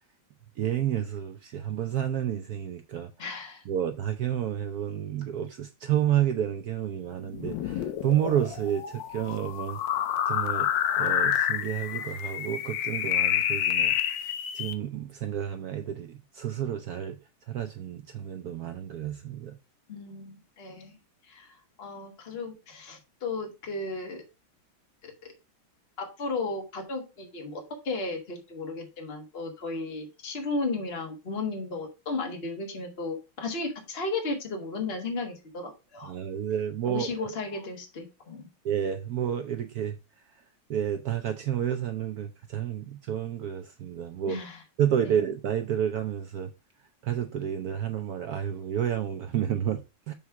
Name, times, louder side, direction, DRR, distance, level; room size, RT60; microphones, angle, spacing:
voice 1, 0.6-3.1 3.7-9.8 10.3-10.7 11.0-13.9 14.5-17.2 17.5-19.5 36.0-37.3 38.6-40.0 40.7-44.4 44.8-46.5 47.0-50.1, right 10 dB, 80° right, 0.8 m, -30 dB
voice 2, 3.2-3.6 19.9-21.0 21.3-24.2 25.0-25.1 26.0-36.1 36.9-38.5 44.3-44.6 45.0-45.1, left 3 dB, 30° left, 1.5 m, -34 dB
sound 1, 7.3-14.7, left 10 dB, 70° left, 1.3 m, -28 dB
7.0 x 3.2 x 5.7 m
omnidirectional pair, 2.2 m